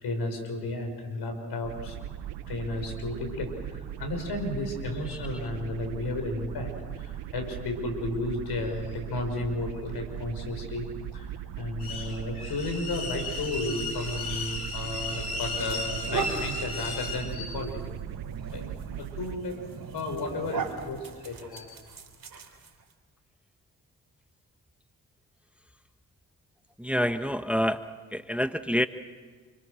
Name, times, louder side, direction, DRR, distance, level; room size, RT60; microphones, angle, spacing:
voice 1, 0.0-2.2 2.5-17.9 18.5-18.7 19.0-19.5 19.9-21.9, left 2 dB, 70° left, 5 dB, 5.8 m, -33 dB
sound 1, 1.6-19.4, right 11 dB, 80° right, 1.0 m, -39 dB
sound 2, 15.5-22.9, right 5 dB, 55° right, 3.7 m, -38 dB
voice 2, 26.8-28.9, equal, 5° right, 10 dB, 1.2 m, -27 dB
29.0 x 24.5 x 6.5 m, 1.5 s
hypercardioid pair, 40°, 40 cm